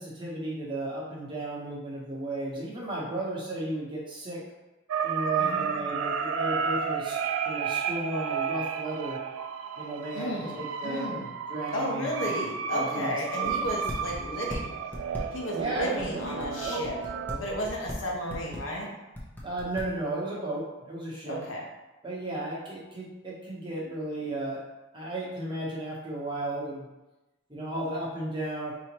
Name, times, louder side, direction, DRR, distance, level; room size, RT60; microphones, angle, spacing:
voice 1, 0.0-4.4 5.0-7.2 7.4-9.2 9.8-11.2 11.5-12.1 12.7-13.5 15.5-17.4 19.4-21.4 22.0-24.6 24.9-26.9 27.5-28.7, right 1 dB, 25° right, -6 dB, 1.0 m, -34 dB
sound 1, 4.9-17.4, right 6 dB, 85° right, 0.3 m, -32 dB
voice 2, 10.1-11.3 11.7-14.7 15.3-16.9 17.4-18.9 21.3-21.6, equal, 75° left, -2 dB, 1.0 m, -33 dB
sound 2, 13.4-14.6 14.9-18.0 18.3-18.8 19.2-19.9, left 1 dB, 10° left, 0.7 m, -38 dB
4.8 x 2.9 x 3.0 m, 1.0 s
head